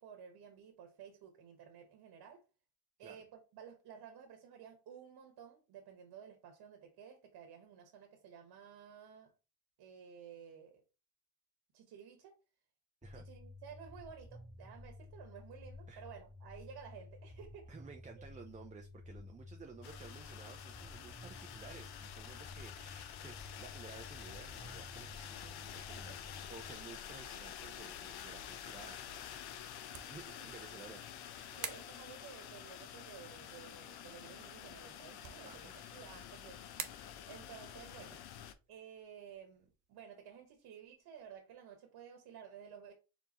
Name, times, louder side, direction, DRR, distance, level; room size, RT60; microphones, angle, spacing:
voice 1, 0.0-2.4 3.0-9.3 9.8-10.8 11.7-12.4 13.1-17.7 18.2-18.3 22.7-22.8 25.9-26.2 30.3-30.5 31.5-36.6 37.3-38.2 38.7-42.9, right 7 dB, 80° right, 1.3 m, -54 dB
sound 1, 13.0-26.7, left 2 dB, 5° left, 2.1 m, -53 dB
voice 2, 17.7-26.2 26.5-29.0 30.1-31.0 35.5-35.8 38.0-38.2, right 5 dB, 20° right, 0.4 m, -54 dB
sound 2, 19.8-38.5, left 9 dB, 75° left, 0.7 m, -49 dB
sound 3, 39.0-41.4, right 8 dB, 50° right, 0.8 m, -54 dB
4.6 x 3.9 x 2.9 m
cardioid pair, 120°, 39 cm